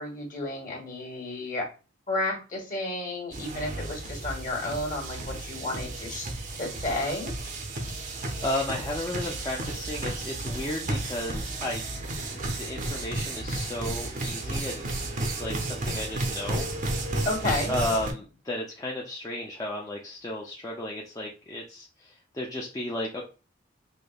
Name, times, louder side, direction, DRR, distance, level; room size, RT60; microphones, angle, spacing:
voice 1, 0.0-1.7 2.1-6.3 6.6-7.3 17.2-17.7, left 2 dB, 45° left, -1 dB, 1.2 m, -32 dB
sound 1, 3.3-18.1, right 2 dB, 45° right, 0.6 m, -33 dB
voice 2, 7.9-11.8 12.3-14.9 15.2-16.7 17.7-23.2, left 1 dB, 20° left, -2 dB, 0.4 m, -34 dB
5.0 x 2.1 x 2.3 m, 0.33 s
head